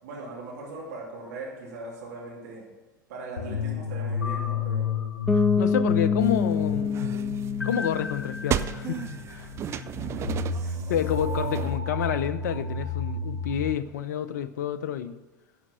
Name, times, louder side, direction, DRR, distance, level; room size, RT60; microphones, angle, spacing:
voice 1, 0.0-2.7 3.1-4.9 10.1-10.9, right 2 dB, 55° right, -3 dB, 3.0 m, -40 dB
sound 1, 3.4-13.7, left 5 dB, 75° left, 0.9 m, -31 dB
voice 2, 5.3-7.3 7.6-9.0 9.3-9.9 10.9-15.2, left 10 dB, 60° left, 13 dB, 0.5 m, -29 dB
Bass guitar, 5.3-9.0, left 5 dB, 5° left, 0.7 m, -27 dB
sound 2, 6.2-11.8, right 10 dB, 25° right, 0.4 m, -35 dB
11.0 x 5.0 x 7.3 m, 1.2 s
figure-of-eight pair, 85°, 11 cm